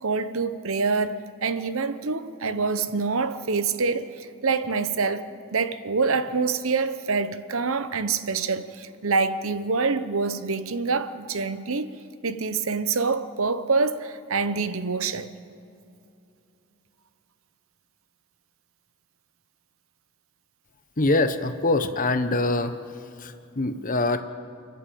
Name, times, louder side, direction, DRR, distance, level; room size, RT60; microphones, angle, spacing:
voice 1, 0.0-11.9 12.2-15.3, right 4 dB, 65° right, 0.9 m, -26 dB
voice 2, 21.0-22.8 23.2-24.2, left 2 dB, 40° left, 1.0 m, -24 dB
29.5 x 11.0 x 8.5 m
head